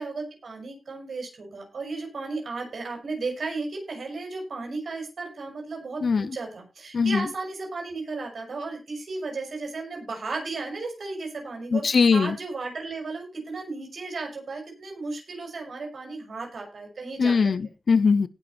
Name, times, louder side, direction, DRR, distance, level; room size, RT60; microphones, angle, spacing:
voice 1, 0.0-17.4, right 3 dB, 75° right, 2 dB, 6.2 m, -34 dB
voice 2, 6.0-6.4 6.9-7.3 11.7-12.4 17.2-18.3, left 5 dB, 75° left, 17 dB, 0.7 m, -21 dB
18.0 x 6.2 x 4.3 m, 0.29 s
cardioid pair, 55°, 0 cm